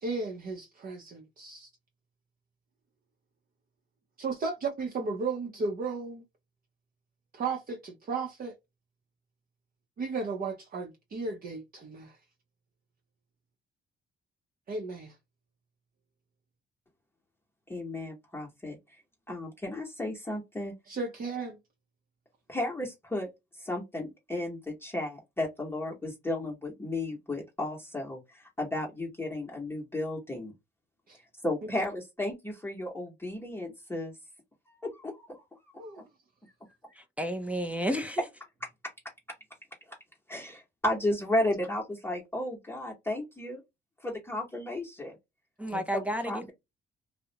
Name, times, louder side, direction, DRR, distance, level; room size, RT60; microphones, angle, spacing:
voice 1, 0.0-1.7 4.2-6.2 7.3-8.5 10.0-12.1 14.7-15.1 20.9-21.6 31.1-31.2 31.6-31.7 35.8-36.0 45.7-45.8, right 4 dB, 45° right, 0.6 m, -34 dB
voice 2, 17.7-19.0 19.3-20.7 22.5-30.5 31.4-34.2 34.7-35.7 40.3-43.6 44.0-45.2 45.9-46.5, left 1 dB, 10° left, 0.9 m, -34 dB
voice 3, 36.9-38.2 45.6-46.5, equal, 5° right, 0.4 m, -32 dB
2.3 x 2.0 x 2.8 m
cardioid pair, 90°, 20 cm